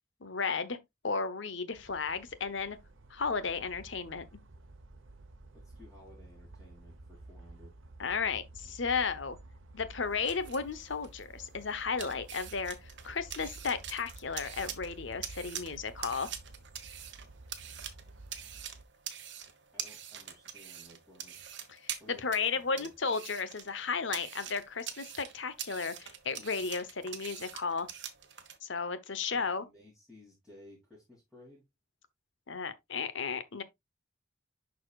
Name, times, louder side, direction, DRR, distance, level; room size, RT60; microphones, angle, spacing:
voice 1, 0.2-0.8 1.0-2.8 3.1-4.2 8.0-9.4 9.7-16.3 21.7-27.9 28.6-29.6 32.5-33.6, left 5 dB, 65° left, 0.9 m, -34 dB
sound 1, 1.7-18.9, right 2 dB, 80° right, 1.0 m, -52 dB
voice 2, 5.5-7.8 19.7-21.4 22.0-22.9 29.3-31.6, left 1 dB, 5° right, 2.9 m, -57 dB
sound 2, 10.0-28.6, right 9 dB, 60° right, 1.2 m, -45 dB
11.0 x 4.2 x 2.4 m
head